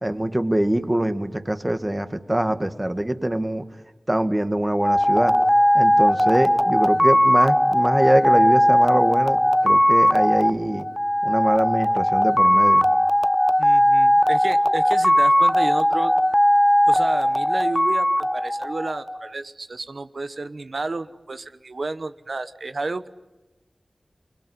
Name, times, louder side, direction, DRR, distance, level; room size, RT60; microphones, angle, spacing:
voice 1, 0.0-3.6 4.1-5.3 5.7-10.9 11.2-12.9, right 1 dB, 25° right, 9 dB, 2.0 m, -23 dB
sound 1, 4.8-19.2, equal, 10° left, 0.8 m, -18 dB
voice 2, 13.6-16.1 16.9-23.1, right 3 dB, 75° right, 11 dB, 1.0 m, -31 dB
29.0 x 21.0 x 9.6 m, 1.1 s
cardioid pair, 40°, 0 cm